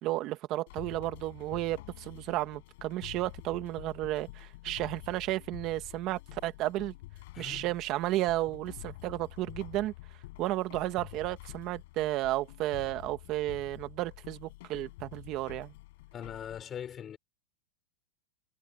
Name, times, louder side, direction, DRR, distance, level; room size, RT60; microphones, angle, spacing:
voice 1, 0.0-6.9 7.4-9.9 10.4-15.7, right 16 dB, 35° right, 1.5 m, -33 dB
sound 1, 0.7-16.6, left 19 dB, 55° left, 6.5 m, -48 dB
voice 2, 7.3-7.7 16.1-17.2, left 9 dB, 20° left, 5.2 m, -41 dB
supercardioid pair, 160°, 0 cm